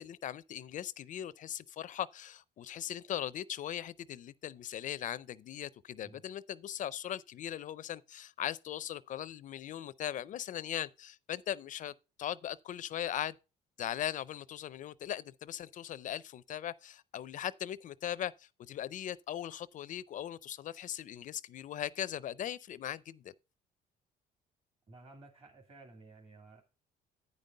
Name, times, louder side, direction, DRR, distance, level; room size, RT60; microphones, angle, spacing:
voice 1, 0.0-11.9 12.2-13.4 13.8-23.3, left 11 dB, 50° left, 0.4 m, -39 dB
voice 2, 24.9-26.6, right 2 dB, 35° right, 2.3 m, -54 dB
9.6 x 5.3 x 5.3 m
cardioid pair, 110°, 17 cm